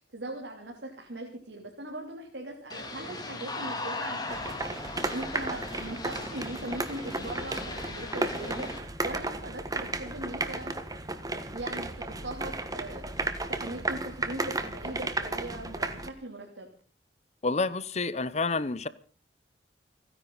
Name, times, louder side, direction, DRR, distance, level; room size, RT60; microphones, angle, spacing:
voice 1, 0.0-10.7 11.5-16.7, right 1 dB, 90° right, 0 dB, 3.3 m, -40 dB
sound 1, 2.7-8.8, left 2 dB, 25° left, 2.9 m, -38 dB
sound 2, 4.3-16.1, right 2 dB, 20° right, 1.5 m, -34 dB
voice 2, 17.4-18.9, left 3 dB, 40° left, 17 dB, 0.8 m, -29 dB
30.0 x 10.5 x 4.1 m, 0.39 s
head